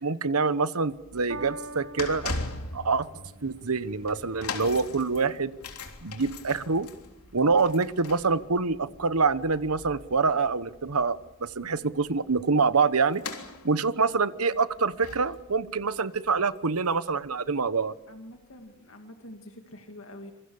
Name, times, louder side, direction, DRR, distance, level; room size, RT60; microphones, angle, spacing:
voice 1, 0.0-2.3 2.7-3.1 3.4-5.5 6.0-6.9 7.3-13.2 13.6-17.9, right 4 dB, 85° right, 14 dB, 1.1 m, -26 dB
sound 1, 0.9-17.3 17.5-17.8 18.5-18.6, left 3 dB, 90° left, 3.5 m, -41 dB
Piano, 1.3-7.9 8.7-8.8, right 2 dB, 55° right, 1.9 m, -47 dB
voice 2, 18.1-20.3, left 1 dB, 65° left, 5 dB, 2.3 m, -46 dB
26.5 x 23.5 x 7.1 m, 0.90 s
head